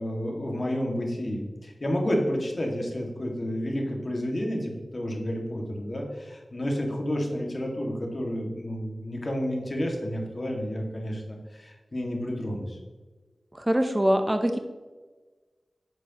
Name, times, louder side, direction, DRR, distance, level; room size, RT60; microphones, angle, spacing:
voice 1, 0.0-12.8, equal, 45° left, 0 dB, 2.0 m, -30 dB
voice 2, 13.5-14.6, equal, 20° right, 6 dB, 0.7 m, -23 dB
9.4 x 6.7 x 3.0 m, 1.3 s
wide cardioid pair, 55°, 0 cm